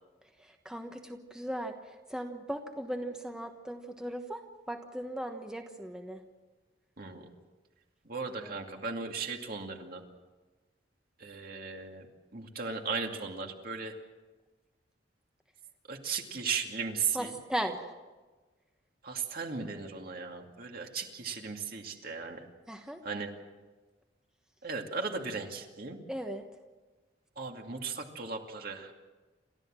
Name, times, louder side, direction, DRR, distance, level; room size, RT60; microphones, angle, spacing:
voice 1, 0.4-6.2 8.4-8.6 17.1-17.8 22.7-23.0 26.1-26.5, right 1 dB, 5° right, 4 dB, 1.2 m, -38 dB
voice 2, 7.0-7.3 8.1-10.0 11.2-12.1 12.3-13.9 15.9-17.3 19.0-22.5 23.0-23.3 24.6-26.0 27.4-28.9, right 5 dB, 55° right, 3 dB, 2.4 m, -36 dB
29.0 x 13.5 x 7.6 m, 1.3 s
head